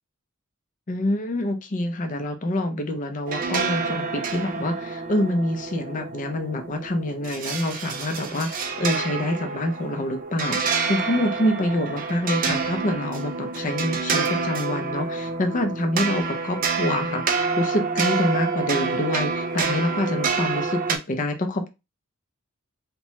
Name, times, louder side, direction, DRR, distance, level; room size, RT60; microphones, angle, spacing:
voice 1, 0.9-21.7, left 1 dB, 40° left, 6 dB, 0.5 m, -26 dB
sound 1, 3.3-21.0, right 4 dB, 40° right, 0.4 m, -28 dB
2.7 x 2.2 x 3.0 m, 0.25 s
head